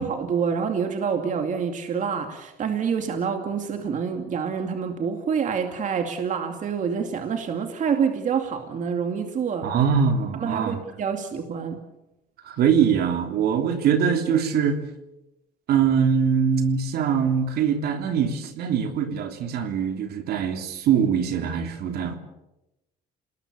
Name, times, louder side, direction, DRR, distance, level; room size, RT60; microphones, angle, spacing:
voice 1, 0.0-9.7 10.4-11.8, right 6 dB, 50° right, 5 dB, 2.5 m, -27 dB
voice 2, 9.6-10.8 12.4-14.8 15.7-22.2, right 7 dB, 70° right, 6 dB, 3.2 m, -23 dB
28.0 x 20.0 x 6.9 m, 0.94 s
cardioid pair, 110°, 17 cm